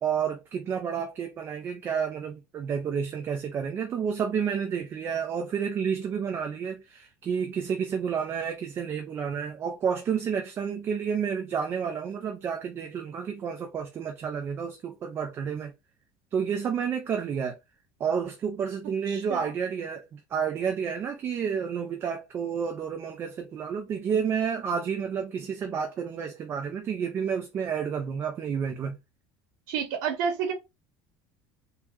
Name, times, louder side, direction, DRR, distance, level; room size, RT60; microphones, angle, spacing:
voice 1, 0.0-15.7 16.3-17.6 18.0-29.0, right 7 dB, 20° right, 0.4 m, -30 dB
voice 2, 19.1-19.5 29.7-30.5, right 7 dB, 75° right, 0.8 m, -30 dB
3.6 x 2.1 x 3.0 m
cardioid pair, 175°, 10 cm